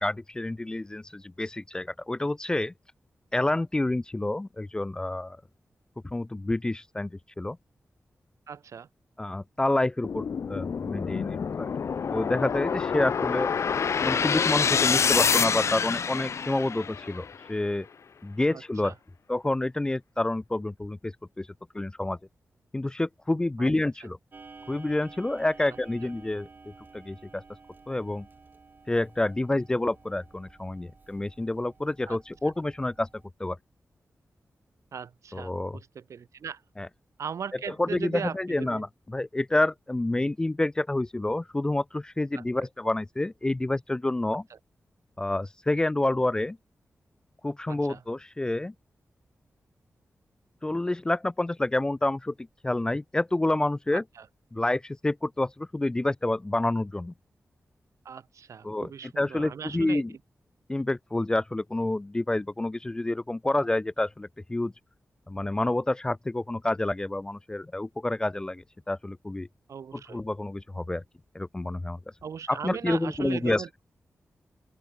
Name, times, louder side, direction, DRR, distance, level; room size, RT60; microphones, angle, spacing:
voice 1, 0.0-2.7 3.3-5.4 6.0-7.6 9.2-11.7 12.1-13.5 14.0-17.9 18.2-18.9 19.3-21.5 21.7-22.2 22.7-24.2 24.7-26.5 26.9-27.4 27.9-28.3 28.9-33.1 33.4-33.6 35.3-35.8 36.8-36.9 37.7-44.4 45.2-46.6 47.4-48.7 50.6-52.3 52.6-54.0 54.5-57.1 58.6-58.9 59.2-60.1 60.7-64.7 65.3-69.5 69.9-71.0 71.3-72.0 72.5-73.6, left 2 dB, 15° left, 0.3 m, -28 dB
voice 2, 8.5-8.9 18.5-18.9 23.6-23.7 25.7-25.8 32.1-32.2 34.9-36.6 37.2-38.8 42.3-42.7 47.7-48.0 53.9-54.3 58.0-60.0 69.7-70.2 72.2-73.7, right 7 dB, 75° right, 1.1 m, -38 dB
sound 1, 10.0-17.3, left 6 dB, 65° left, 1.6 m, -27 dB
Clock, 24.3-33.3, right 4 dB, 40° right, 4.4 m, -52 dB
open air
wide cardioid pair, 155°, 5 cm